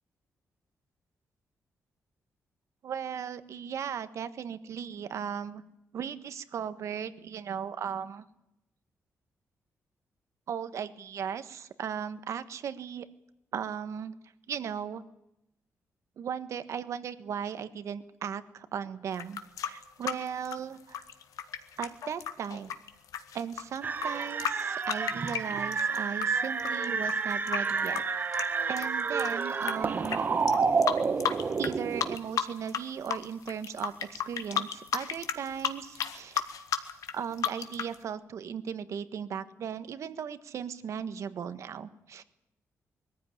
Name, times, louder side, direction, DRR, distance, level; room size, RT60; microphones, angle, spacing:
voice 1, 2.8-5.6 5.9-8.3 10.5-13.1 13.5-14.1 14.5-15.0 16.2-21.0 21.8-22.7 23.3-28.0 28.7-30.2 31.6-36.4 37.1-42.2, right 8 dB, 60° right, 12 dB, 1.4 m, -37 dB
sound 1, 19.1-26.3 26.6-29.7 30.0-30.2 30.5-31.7 32.0-32.8 33.1-37.9, left 9 dB, 80° left, 1.8 m, -33 dB
sound 2, 23.8-32.2, right 5 dB, 35° right, 1.3 m, -29 dB
22.0 x 15.0 x 10.0 m, 0.83 s
wide cardioid pair, 175°, 6 cm